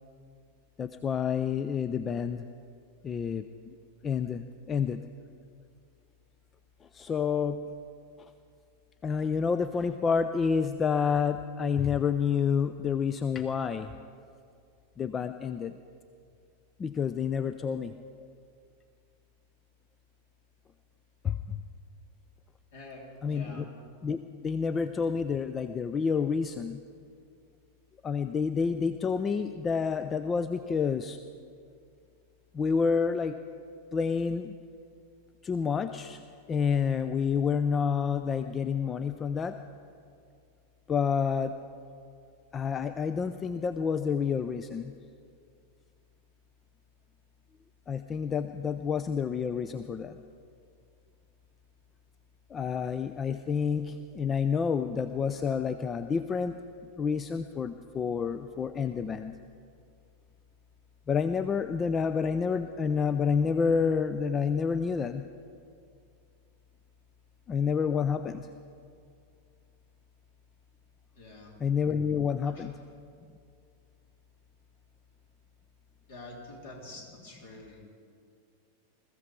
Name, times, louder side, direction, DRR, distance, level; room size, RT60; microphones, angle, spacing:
voice 1, 0.8-2.5 3.0-3.7 4.0-5.0 6.9-7.6 9.0-13.9 15.0-15.7 16.8-17.9 21.2-21.6 23.2-23.6 24.0-26.8 28.0-31.2 32.5-33.4 33.9-34.5 35.4-36.2 36.5-39.5 40.9-41.5 42.5-44.9 47.9-50.2 52.5-56.6 57.0-59.3 61.1-65.2 67.5-68.5 71.6-72.8, left 6 dB, 20° left, 11 dB, 0.5 m, -29 dB
voice 2, 22.7-23.7 71.2-71.5 72.4-72.6 76.1-77.9, left 2 dB, 55° left, -1 dB, 3.5 m, -46 dB
21.0 x 14.5 x 4.5 m, 2.3 s
figure-of-eight pair, 90°, 0 cm